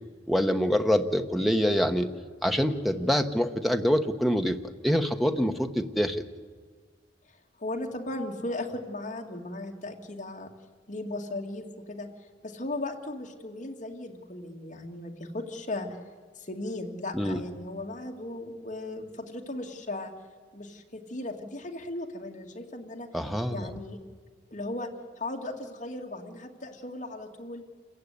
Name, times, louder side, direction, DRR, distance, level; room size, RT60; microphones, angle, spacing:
voice 1, 0.3-2.1 2.4-4.6 4.8-6.2 17.1-17.4 23.1-23.7, equal, ahead, 5 dB, 1.0 m, -25 dB
voice 2, 7.6-10.5 10.9-12.1 12.4-16.0 16.4-20.1 20.5-23.1 23.5-24.0 24.5-27.6, left 2 dB, 45° left, 2 dB, 2.2 m, -37 dB
27.5 x 15.5 x 9.6 m, 1.5 s
head